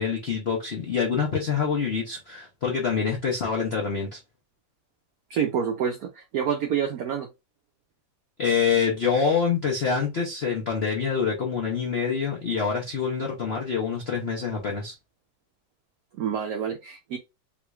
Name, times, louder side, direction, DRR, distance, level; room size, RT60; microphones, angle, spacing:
voice 1, 0.0-4.2 8.4-14.9, left 6 dB, 70° left, 0.6 m, -26 dB
voice 2, 5.3-7.3 16.1-17.2, right 8 dB, 80° right, 0.8 m, -27 dB
3.8 x 3.0 x 2.3 m
omnidirectional pair, 2.1 m